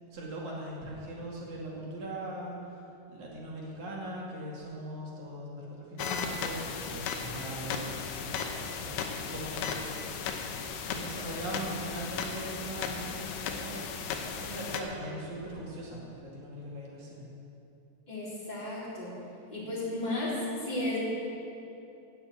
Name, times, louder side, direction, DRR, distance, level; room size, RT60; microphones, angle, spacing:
voice 1, 0.1-2.6 3.1-9.0 9.3-9.9 10.3-13.9 14.3-17.3, right 1 dB, 50° right, -4 dB, 3.4 m, -40 dB
sound 1, 6.0-14.8, left 6 dB, 75° left, 2.6 m, -36 dB
voice 2, 18.1-19.1 19.5-21.0, left 1 dB, 10° left, -8 dB, 3.6 m, -34 dB
18.0 x 7.0 x 7.8 m, 2.9 s
omnidirectional pair, 4.9 m